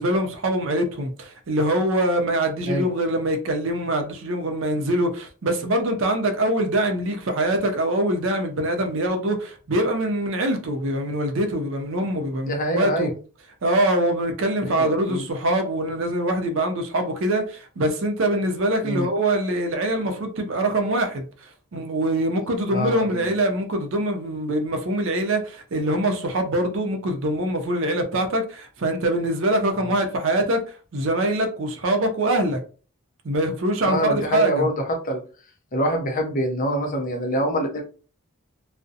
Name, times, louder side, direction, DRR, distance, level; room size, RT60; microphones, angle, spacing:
voice 1, 0.0-13.1 13.6-30.6 30.9-32.6 33.2-34.7, right 1 dB, 60° right, 0.5 m, -24 dB
voice 2, 12.4-13.2 14.7-15.2 18.8-19.1 22.7-23.3 29.8-29.9 33.8-35.2 35.7-37.8, equal, 35° left, 0.5 m, -25 dB
2.4 x 2.0 x 2.6 m
head